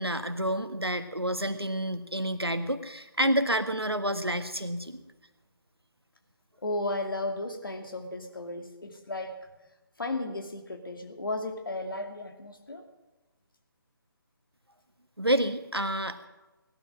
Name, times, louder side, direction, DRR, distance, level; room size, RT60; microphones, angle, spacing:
voice 1, 0.0-5.0 15.2-16.3, right 1 dB, 90° right, 9 dB, 1.5 m, -29 dB
voice 2, 6.6-9.4 10.0-12.9, left 2 dB, 65° left, 4 dB, 2.5 m, -34 dB
17.5 x 12.0 x 6.1 m, 1.1 s
figure-of-eight pair, 150°, 13 cm